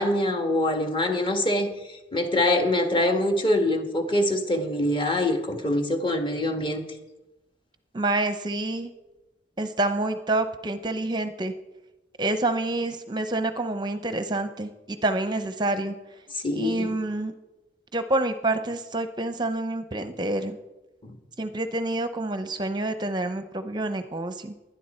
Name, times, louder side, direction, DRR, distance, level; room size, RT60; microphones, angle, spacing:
voice 1, 0.0-1.7 2.1-6.8 16.3-16.9 21.0-21.1, left 1 dB, 25° left, 4 dB, 1.7 m, -24 dB
voice 2, 7.9-8.9 9.6-11.5 12.2-16.0 16.5-17.3 17.9-20.6 21.4-24.5, right 2 dB, 25° right, 9 dB, 0.7 m, -27 dB
20.0 x 11.5 x 4.4 m, 1.0 s
head